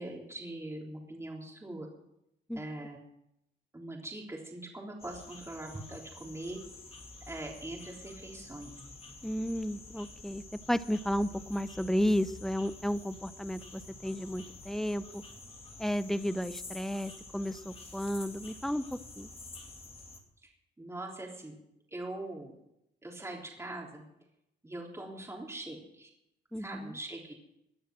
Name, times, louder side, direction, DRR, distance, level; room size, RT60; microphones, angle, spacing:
voice 1, 0.0-1.9 2.6-3.0 3.7-6.6 7.3-8.7 20.4-20.5 20.8-21.5 21.9-22.5 23.0-24.0 24.6-26.1 26.6-27.4, right 1 dB, 15° right, -1 dB, 3.6 m, -42 dB
sound 1, 5.0-20.2, left 3 dB, 30° left, 2.5 m, -49 dB
voice 2, 9.2-10.4 10.7-15.2 15.8-19.3 26.5-27.0, equal, ahead, 14 dB, 0.7 m, -33 dB
18.0 x 10.0 x 6.3 m, 0.83 s
cardioid pair, 90°, 20 cm